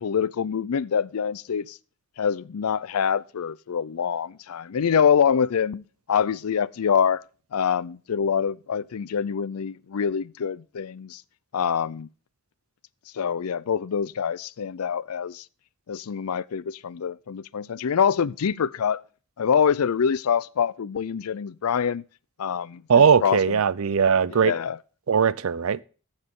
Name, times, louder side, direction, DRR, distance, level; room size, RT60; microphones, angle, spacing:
voice 1, 0.0-1.8 2.2-5.8 6.1-7.2 7.5-11.2 11.5-12.1 13.1-15.4 15.9-19.0 19.4-22.0 22.4-22.8 23.2-23.4 24.4-24.8, left 7 dB, 80° left, 0.5 m, -25 dB
voice 2, 22.9-24.5 25.1-25.8, right 6 dB, 70° right, 0.5 m, -19 dB
14.5 x 7.2 x 3.7 m
head